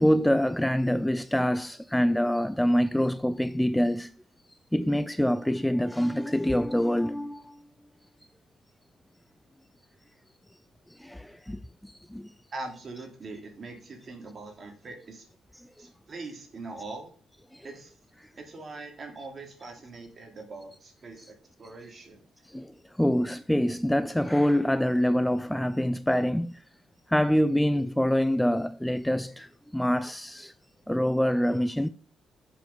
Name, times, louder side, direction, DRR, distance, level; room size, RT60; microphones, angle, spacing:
voice 1, 0.0-4.1 4.7-7.6 10.9-12.3 15.8-15.9 17.5-17.7 22.5-26.6 27.1-30.5 30.9-31.9, equal, 5° left, 0.4 m, -25 dB
voice 2, 12.5-15.3 15.8-17.1 17.6-17.9 18.4-22.2, right 3 dB, 40° right, 2.9 m, -42 dB
7.5 x 7.0 x 5.4 m
cardioid pair, 90°, 0 cm